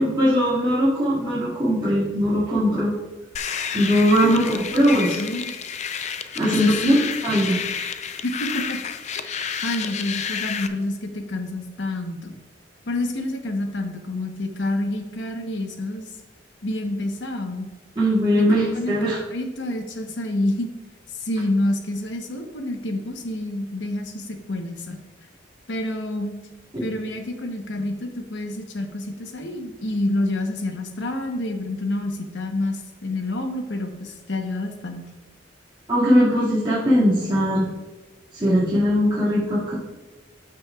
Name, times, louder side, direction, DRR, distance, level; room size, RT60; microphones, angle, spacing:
voice 1, 0.0-2.9 3.7-5.2 6.4-7.9 18.0-19.2 26.7-26.8 35.9-37.7 38.3-39.7, equal, 25° right, -12 dB, 2.1 m, -20 dB
sound 1, 3.3-10.7, left 7 dB, 40° left, 0.4 m, -30 dB
voice 2, 4.7-5.5 6.4-7.0 8.2-8.8 9.2-9.3 9.6-12.3 12.9-16.1 16.6-17.6 18.4-20.7 21.1-25.0 25.7-26.3 26.8-35.0, left 1 dB, 70° left, 5 dB, 1.0 m, -28 dB
12.5 x 6.1 x 2.4 m, 1.2 s
head